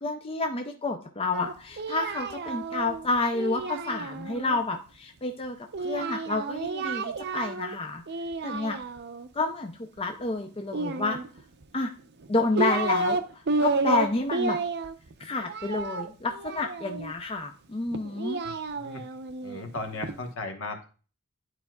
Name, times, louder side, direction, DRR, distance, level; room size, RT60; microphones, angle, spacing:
voice 1, 0.0-8.0 8.4-8.8 9.3-11.2 11.7-11.9 12.3-14.6 15.2-18.4, left 3 dB, 25° left, 4 dB, 0.5 m, -29 dB
Singing, 1.3-4.6 5.7-7.8 8.1-9.3 10.7-11.6 12.2-13.2 13.5-17.1 17.9-20.1, right 3 dB, 50° right, 0.6 m, -31 dB
voice 2, 18.4-19.0 19.4-20.9, left 3 dB, 65° left, 5 dB, 1.2 m, -37 dB
11.0 x 4.6 x 2.3 m, 0.37 s
head